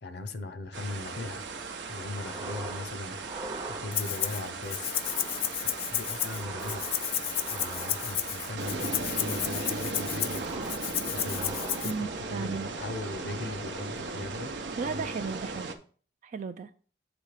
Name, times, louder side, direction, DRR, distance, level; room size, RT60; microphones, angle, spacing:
voice 1, 0.0-1.4 1.9-5.0 5.6-6.9 7.1-7.2 7.5-10.4 11.1-14.5 14.8-15.0, left 3 dB, 65° left, 0.7 m, -39 dB
sound 1, 0.7-15.7, right 3 dB, 85° right, 0.8 m, -37 dB
sound 2, 2.1-2.9 3.2-4.3 4.9-5.5 5.9-8.4 8.9-9.5 9.9-10.9 11.2-12.4 12.8-13.5, right 2 dB, 25° right, 0.7 m, -43 dB
Rattle (instrument), 3.9-4.4 4.7-11.9, left 11 dB, 35° left, 0.3 m, -32 dB
voice 2, 11.8-12.7 14.8-15.7 16.2-16.7, right 5 dB, 45° right, 0.3 m, -35 dB
7.9 x 3.2 x 5.0 m
head